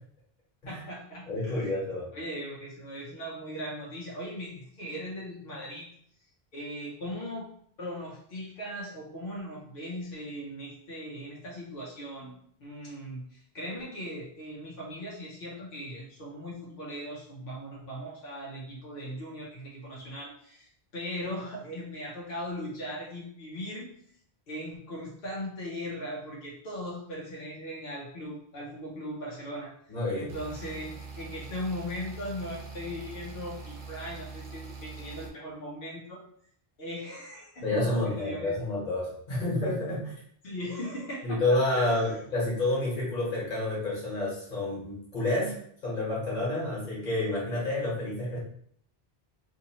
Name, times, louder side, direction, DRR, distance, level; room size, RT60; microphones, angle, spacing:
voice 1, 0.7-1.7 2.1-5.9 6.5-7.5 7.8-23.9 24.5-36.2 36.8-38.6 40.4-42.2, equal, 65° left, -4 dB, 0.8 m, -39 dB
voice 2, 1.3-2.1 29.9-30.3 37.6-40.1 41.2-45.6 45.8-48.4, left 2 dB, 45° left, -6 dB, 1.3 m, -29 dB
sound 1, 30.3-35.3, right 4 dB, 60° right, 0.8 m, -43 dB
2.7 x 2.7 x 2.8 m, 0.64 s
omnidirectional pair, 1.0 m